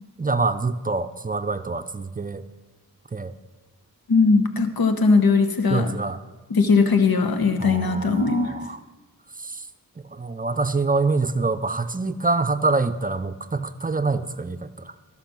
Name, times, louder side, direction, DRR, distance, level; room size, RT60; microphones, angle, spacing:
voice 1, 0.2-2.4 3.1-3.3 5.7-6.2 7.6-8.8 9.4-9.6 10.1-14.9, right 3 dB, 25° right, 12 dB, 0.5 m, -25 dB
voice 2, 4.1-5.9 6.5-8.5, left 4 dB, 85° left, 8 dB, 1.0 m, -19 dB
13.5 x 5.8 x 6.0 m, 1.3 s
cardioid pair, 45°, 36 cm